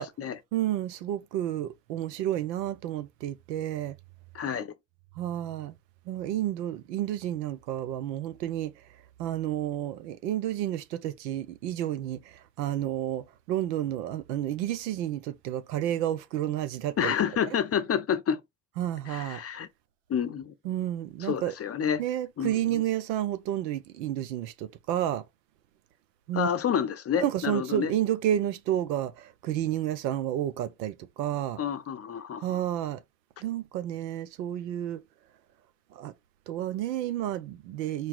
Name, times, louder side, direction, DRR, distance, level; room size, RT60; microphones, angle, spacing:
voice 1, 0.0-0.4 4.3-4.7 17.0-18.4 19.1-19.7 20.1-20.5 21.2-22.0 22.4-22.8 26.3-27.9 31.6-32.5, left 8 dB, 30° left, 0.7 m, -29 dB
voice 2, 0.5-4.0 5.2-5.7 6.1-8.7 9.2-17.1 18.8-19.4 20.6-21.6 22.0-25.2 26.3-26.5 27.2-31.6 32.4-33.0 33.4-35.0 35.9-36.1 36.5-38.1, right 12 dB, 80° right, 0.8 m, -31 dB
4.7 x 2.9 x 3.8 m
hypercardioid pair, 75°, 49 cm